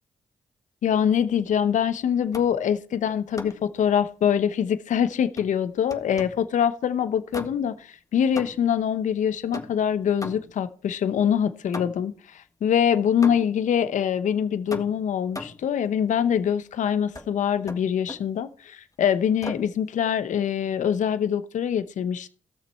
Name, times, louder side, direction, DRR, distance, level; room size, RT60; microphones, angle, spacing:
voice 1, 0.8-22.3, left 8 dB, 70° left, 0.8 m, -24 dB
sound 1, 2.3-2.7 3.4-3.7 5.4-6.5 7.3-7.8 8.4-8.8 9.5-10.7 11.7-12.2 13.2-13.7 14.7-15.7 17.1-17.3 17.7-18.3 19.4-19.8, left 2 dB, 25° left, 1.6 m, -38 dB
16.0 x 6.8 x 4.4 m
supercardioid pair, 45°, 13 cm